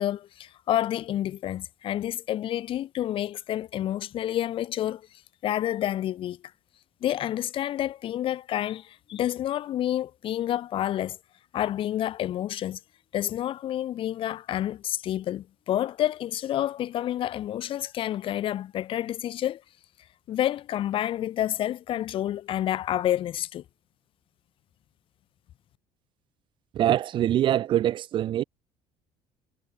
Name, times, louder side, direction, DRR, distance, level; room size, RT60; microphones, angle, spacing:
voice 1, 0.0-5.1 5.4-6.4 7.0-11.2 11.5-12.8 13.1-19.6 20.3-23.6, left 12 dB, 45° left, 2.9 m, -29 dB
voice 2, 26.7-28.4, right 12 dB, 40° right, 0.8 m, -24 dB
cardioid pair, 150°, 12 cm